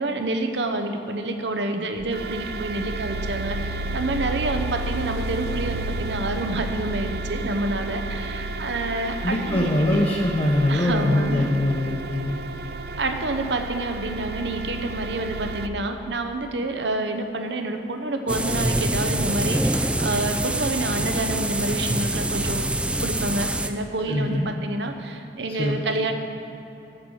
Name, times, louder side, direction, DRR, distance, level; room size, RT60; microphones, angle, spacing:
voice 1, 0.0-10.0 10.7-11.5 13.0-22.7 23.0-26.1, right 2 dB, 80° right, 6 dB, 0.9 m, -28 dB
sound 1, 2.0-15.7, right 2 dB, 60° right, 0.5 m, -32 dB
voice 2, 9.2-12.3 24.1-24.5 25.6-25.7, left 1 dB, 35° left, -3 dB, 0.8 m, -22 dB
sound 2, 18.3-23.7, right 1 dB, 5° right, 0.3 m, -25 dB
10.0 x 8.3 x 6.3 m, 3.0 s
head